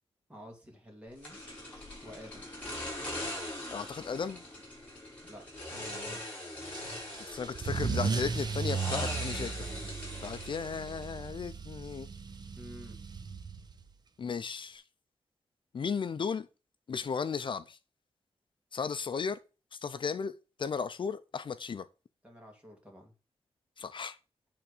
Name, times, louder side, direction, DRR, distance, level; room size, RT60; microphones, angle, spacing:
voice 1, 0.3-1.4 2.0-2.5 5.2-6.5 12.5-13.0 22.2-23.1, equal, 10° right, 2.3 m, -50 dB
sound 1, 1.2-11.3, left 1 dB, 15° left, 5.2 m, -41 dB
voice 2, 3.7-4.4 7.2-9.7 10.2-12.1 14.2-14.8 15.7-16.5 16.9-17.8 18.7-19.4 19.7-20.3 20.6-21.9 23.8-24.2, left 6 dB, 50° left, 0.5 m, -35 dB
Car / Engine starting / Accelerating revving vroom, 6.7-13.9, right 5 dB, 40° right, 0.7 m, -36 dB
8.9 x 3.5 x 6.5 m
wide cardioid pair, 150°, 10 cm